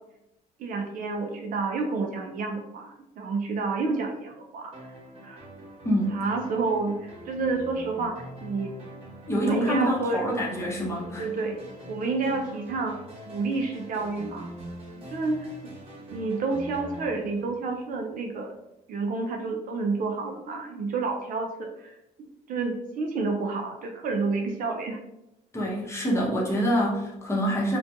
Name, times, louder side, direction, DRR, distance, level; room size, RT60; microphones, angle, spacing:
voice 1, 0.6-4.7 5.2-5.5 6.1-8.7 9.3-10.2 11.1-11.6 11.9-13.0 13.3-14.5 14.9-15.5 16.1-18.5 18.9-22.0 22.5-25.0, right 3 dB, 55° right, 2 dB, 0.4 m, -29 dB
sound 1, 4.7-18.3, right 1 dB, 35° right, 1.0 m, -44 dB
voice 2, 5.8-6.2 9.3-11.2 25.5-27.8, equal, 15° left, -4 dB, 0.7 m, -26 dB
2.4 x 2.2 x 2.6 m, 0.89 s
cardioid pair, 110°, 17 cm